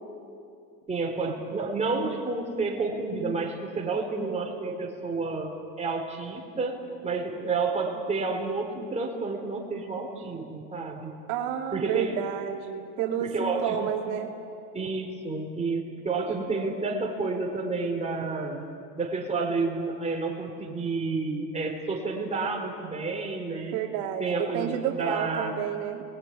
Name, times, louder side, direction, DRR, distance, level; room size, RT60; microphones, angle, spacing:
voice 1, 0.9-5.5 5.8-11.1 11.7-12.2 13.2-13.9 14.7-18.6 19.0-23.8 24.2-25.5, right 3 dB, 15° right, 0 dB, 4.5 m, -30 dB
voice 2, 11.3-14.3 23.7-26.0, right 9 dB, 70° right, 1 dB, 2.8 m, -30 dB
29.5 x 21.0 x 9.8 m, 2.6 s
supercardioid pair, 130°, 42 cm